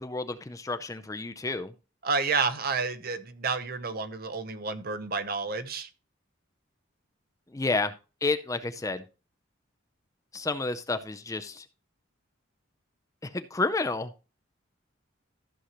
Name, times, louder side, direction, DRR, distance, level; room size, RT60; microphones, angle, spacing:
voice 1, 0.0-1.7 7.5-7.9 8.2-9.0 10.3-11.6 13.3-14.1, left 3 dB, 15° left, 10 dB, 0.5 m, -30 dB
voice 2, 2.0-5.9, right 4 dB, 50° right, 10 dB, 0.8 m, -30 dB
14.0 x 6.3 x 2.9 m, 0.31 s
head